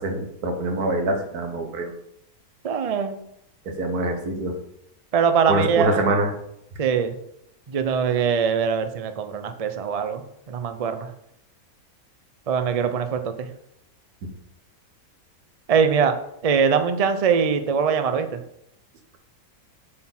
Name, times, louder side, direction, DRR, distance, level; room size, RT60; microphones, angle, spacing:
voice 1, 0.0-1.9 3.7-4.6 5.5-6.3 14.2-14.3, right 2 dB, 80° right, 4 dB, 1.7 m, -25 dB
voice 2, 2.6-3.2 5.1-6.0 6.8-7.2 7.7-10.2 10.5-11.1 12.5-13.5 15.7-16.2 16.4-18.4, right 6 dB, 65° right, 9 dB, 0.3 m, -22 dB
7.5 x 4.4 x 5.9 m, 0.77 s
omnidirectional pair, 1.6 m